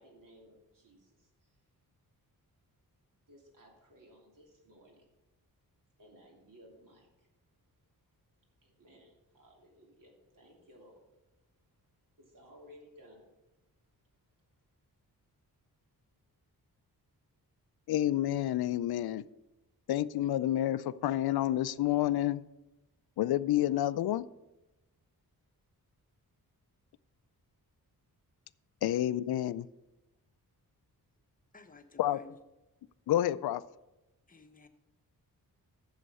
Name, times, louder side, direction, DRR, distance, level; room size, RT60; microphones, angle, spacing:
voice 1, 0.0-1.6 3.3-5.1 6.0-7.3 8.6-11.0 12.2-13.3, equal, 60° right, 0 dB, 3.0 m, -58 dB
voice 2, 17.9-19.2 19.9-22.4 23.2-24.3 28.8-29.7 32.0-32.2 33.1-33.6, left 13 dB, 85° left, 16 dB, 0.5 m, -29 dB
voice 3, 31.5-32.4 34.3-34.7, left 3 dB, 20° left, 6 dB, 0.9 m, -54 dB
11.0 x 7.3 x 5.5 m, 1.0 s
wide cardioid pair, 140°, 37 cm